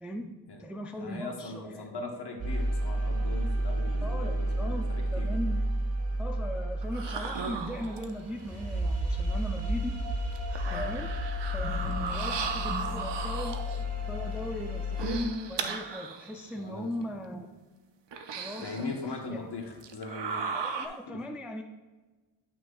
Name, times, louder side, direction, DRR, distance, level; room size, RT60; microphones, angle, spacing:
voice 1, 0.0-2.0 4.0-5.7 6.2-10.0 10.7-11.1 11.5-13.6 14.1-17.5 18.3-19.5 20.5-21.6, equal, 5° right, 4 dB, 0.3 m, -38 dB
voice 2, 0.9-5.3 10.6-11.0 11.8-12.0 16.5-17.2 18.6-20.5 21.1-21.2, left 3 dB, 55° left, 2 dB, 1.1 m, -40 dB
sound 1, 2.4-15.2, equal, 30° right, 1.1 m, -31 dB
sound 2, 6.8-8.3 9.6-9.7 10.3-13.9 14.8-16.5 17.0-17.1 18.1-19.0 19.8-20.9, right 5 dB, 60° right, 0.6 m, -36 dB
8.3 x 5.9 x 2.3 m, 1.2 s
wide cardioid pair, 110°, 48 cm